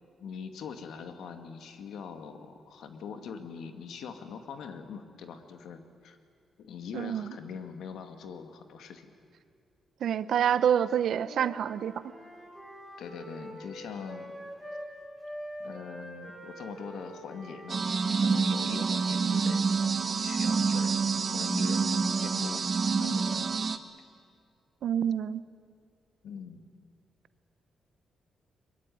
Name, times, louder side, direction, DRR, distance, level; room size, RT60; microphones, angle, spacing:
voice 1, 0.2-6.2 6.6-9.1 13.0-14.3 15.6-19.7 20.2-21.0 21.3-23.8 26.2-26.6, left 6 dB, 80° left, 7 dB, 2.2 m, -43 dB
voice 2, 6.9-7.3 10.0-12.0 24.8-25.4, right 9 dB, 70° right, 15 dB, 0.8 m, -27 dB
Wind instrument woodwind instrument, 11.0-14.9 15.2-19.4, equal, 5° left, 6.7 m, -45 dB
sound 1, 17.7-23.8, right 5 dB, 35° right, 1.1 m, -27 dB
22.5 x 22.0 x 9.4 m, 2.3 s
cardioid pair, 130°, 0 cm